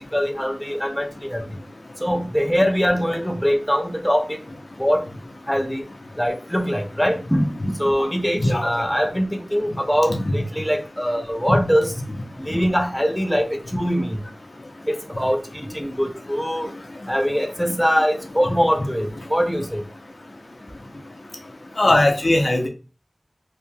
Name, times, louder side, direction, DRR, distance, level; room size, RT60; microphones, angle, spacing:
voice 1, 0.1-1.4 2.0-4.4 4.8-5.0 5.5-5.8 6.2-11.9 12.4-14.2 14.9-16.7 17.1-19.8, equal, 5° left, 3 dB, 0.5 m, -22 dB
voice 2, 8.4-8.8 10.1-10.3 11.5-11.6 16.6-16.7 17.7-17.8 21.8-22.7, left 1 dB, 60° left, 3 dB, 0.6 m, -20 dB
3.1 x 2.8 x 2.2 m, 0.33 s
wide cardioid pair, 60°, 0 cm